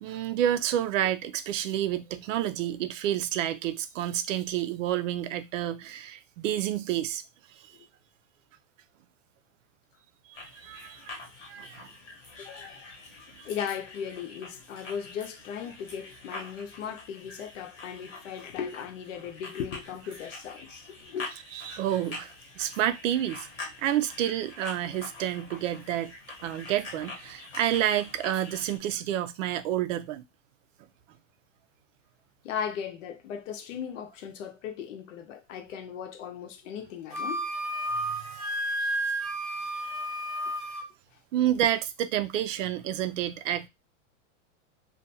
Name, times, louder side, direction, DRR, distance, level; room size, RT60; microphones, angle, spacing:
voice 1, 0.0-7.2 10.4-11.2 11.5-11.9 13.4-13.5 21.5-23.5 23.8-26.1 26.4-30.2 38.8-38.9 41.3-43.7, right 11 dB, 80° right, 0.5 m, -29 dB
sound 1, 10.3-28.8, left 3 dB, 30° left, 0.8 m, -45 dB
voice 2, 12.4-12.9 13.4-21.3 32.4-37.5 41.4-41.5, left 8 dB, 80° left, 0.7 m, -37 dB
Wind instrument woodwind instrument, 37.1-40.9, right 1 dB, ahead, 0.4 m, -31 dB
2.5 x 2.3 x 2.7 m
supercardioid pair, 175°, 37 cm